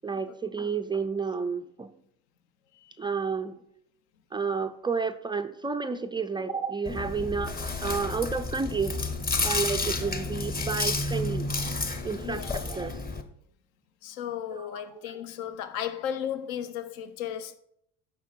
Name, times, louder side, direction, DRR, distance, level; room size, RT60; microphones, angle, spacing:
voice 1, 0.0-1.9 3.0-3.6 4.3-7.6 7.8-9.0 9.4-11.5 12.0-13.0 14.5-14.8, right 5 dB, 10° right, 0.4 m, -31 dB
Chewing mastication, 6.8-13.2, left 3 dB, 20° left, 1.0 m, -31 dB
voice 2, 12.2-12.6 14.0-17.6, left 9 dB, 60° left, 1.0 m, -35 dB
9.8 x 6.3 x 4.5 m
figure-of-eight pair, 60°, 46 cm